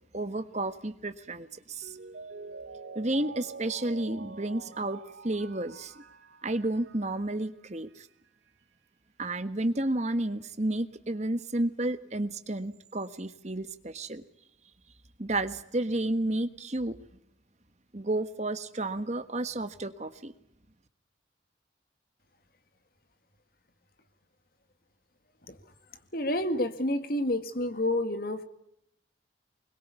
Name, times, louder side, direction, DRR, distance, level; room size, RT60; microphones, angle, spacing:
voice 1, 0.1-2.0 2.9-5.9 6.4-8.1 9.2-14.2 15.2-17.0 17.9-20.3, right 1 dB, 35° right, 10 dB, 1.4 m, -31 dB
Mallet percussion, 1.8-7.3 7.7-7.8, right 4 dB, 70° right, 1.2 m, -46 dB
voice 2, 26.1-28.4, left 1 dB, 50° left, 9 dB, 2.0 m, -29 dB
24.5 x 21.5 x 8.3 m, 0.78 s
head